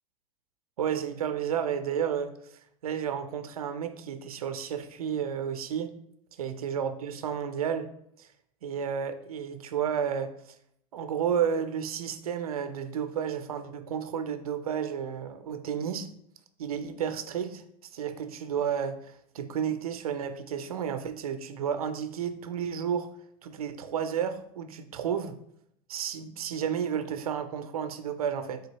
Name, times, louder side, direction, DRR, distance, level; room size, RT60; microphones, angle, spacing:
voice 1, 0.8-2.3 2.8-5.9 6.4-7.9 8.2-8.3 8.6-10.3 10.9-16.1 16.6-17.6 17.9-23.1 23.4-25.4 25.9-28.6, right 8 dB, 90° right, 10 dB, 0.4 m, -31 dB
3.9 x 3.3 x 2.9 m, 0.71 s
hypercardioid pair, 90°, 18 cm